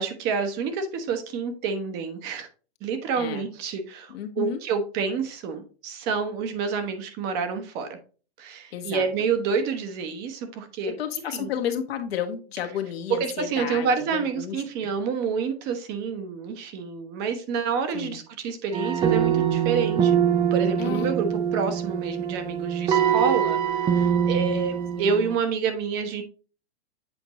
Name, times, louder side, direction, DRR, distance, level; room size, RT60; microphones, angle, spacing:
voice 1, 0.0-2.5 2.8-7.9 8.4-10.9 11.3-11.5 13.2-20.2 20.5-21.3 21.5-26.2, right 5 dB, 30° right, 8 dB, 1.0 m, -28 dB
voice 2, 4.1-4.6 8.7-9.0 10.8-14.9 17.9-18.2 20.8-21.1 25.0-25.1, left 8 dB, 70° left, 4 dB, 1.4 m, -32 dB
sound 1, 18.7-25.3, right 8 dB, 15° right, 0.5 m, -24 dB
7.9 x 4.5 x 3.0 m, 0.36 s
hypercardioid pair, 145°, 32 cm